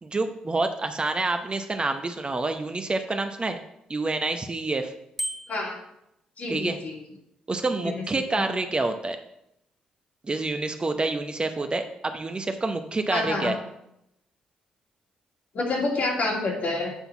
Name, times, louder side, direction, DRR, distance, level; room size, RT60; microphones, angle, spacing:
voice 1, 0.0-3.6 3.9-4.9 6.5-6.8 7.5-9.2 10.2-13.6, right 3 dB, 30° right, 6 dB, 0.8 m, -27 dB
Bicycle bell, 5.2-5.8, right 1 dB, 5° left, 1.4 m, -33 dB
voice 2, 6.4-7.0 7.8-8.0 8.4-8.5 13.1-13.5 15.5-16.9, left 2 dB, 55° left, -2 dB, 2.6 m, -28 dB
8.1 x 3.9 x 5.8 m, 0.81 s
hypercardioid pair, 45°, 3 cm